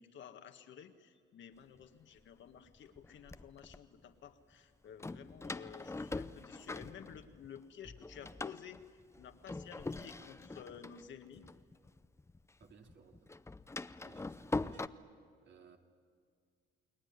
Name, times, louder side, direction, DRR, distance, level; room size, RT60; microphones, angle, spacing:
voice 1, 0.0-8.8 9.2-11.4, left 8 dB, 70° left, 7 dB, 1.8 m, -53 dB
Door, 1.8-1.9 2.7-3.8 5.0-7.6 7.8-12.4 12.6-14.9, left 2 dB, 15° left, 0.7 m, -43 dB
voice 2, 12.6-13.4 14.0-15.0 15.4-15.8, right 6 dB, 60° right, 3 dB, 2.9 m, -62 dB
29.5 x 21.0 x 9.7 m, 2.1 s
cardioid pair, 90°, 20 cm